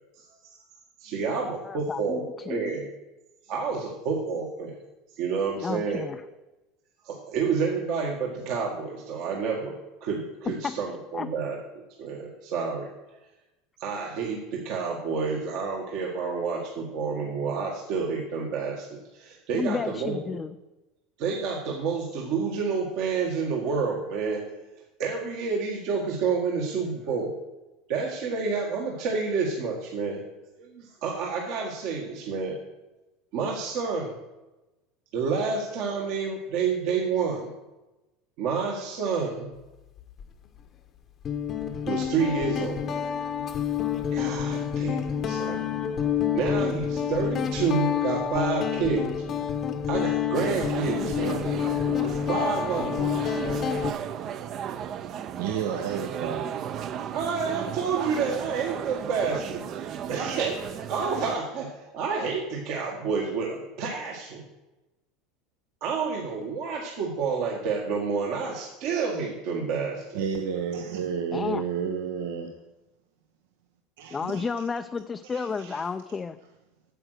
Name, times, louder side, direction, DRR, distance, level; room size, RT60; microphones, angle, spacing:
voice 1, 1.0-2.9 3.5-4.7 5.2-6.0 7.0-11.6 12.0-12.9 13.8-20.2 21.2-24.4 25.0-27.3 27.9-30.2 30.6-32.6 33.3-34.2 35.1-37.5 38.4-39.5 41.8-42.8 44.1-45.6 46.3-49.1 49.9-51.4 52.3-53.0 57.1-64.5 65.8-70.2, right 5 dB, 65° right, -1 dB, 1.7 m, -29 dB
voice 2, 1.6-2.7 5.6-6.2 10.6-10.7 11.1-11.3 19.5-20.5 71.3-71.6 74.1-76.4, left 5 dB, 20° left, 7 dB, 0.4 m, -32 dB
Guitar, 40.0-40.2 41.2-53.9, left 8 dB, 40° left, 0.9 m, -28 dB
sound 1, 50.3-61.4, right 9 dB, 45° right, 0.6 m, -35 dB
voice 3, 55.4-56.8 70.1-72.5 74.0-74.5 75.2-75.8, right 7 dB, 80° right, 4 dB, 0.9 m, -31 dB
8.9 x 7.8 x 6.5 m, 1.0 s
supercardioid pair, 110°, 0 cm